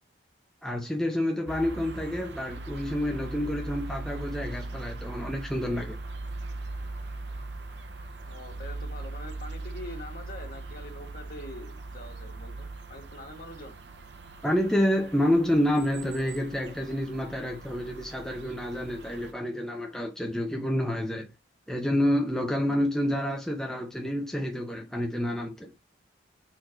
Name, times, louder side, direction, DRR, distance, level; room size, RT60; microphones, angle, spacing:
voice 1, 0.6-6.0 14.4-21.3 21.7-25.7, left 1 dB, 5° left, 0.7 m, -28 dB
sound 1, 1.5-19.3, right 2 dB, 65° right, 0.8 m, -40 dB
voice 2, 8.2-13.8, left 1 dB, 50° left, 2.0 m, -44 dB
4.6 x 4.5 x 4.5 m
head